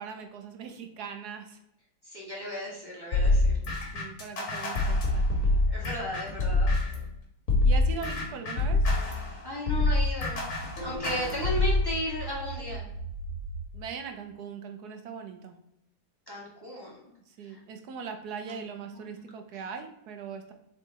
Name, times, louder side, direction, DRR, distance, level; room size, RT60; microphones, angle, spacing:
voice 1, 0.0-1.6 3.9-5.6 7.6-8.9 11.1-11.4 13.7-15.6 17.3-20.5, right 6 dB, 80° right, 6 dB, 1.3 m, -40 dB
voice 2, 2.1-3.5 5.7-6.7 9.4-10.4 10.8-12.9 16.3-17.0 18.4-18.5, left 1 dB, 15° left, -5 dB, 1.9 m, -35 dB
sound 1, 3.1-7.0 7.5-11.8, left 2 dB, 55° left, 1.9 m, -26 dB
sound 2, 9.3-13.7, right 3 dB, 50° right, 2.0 m, -41 dB
7.2 x 4.0 x 4.2 m, 0.79 s
omnidirectional pair, 1.7 m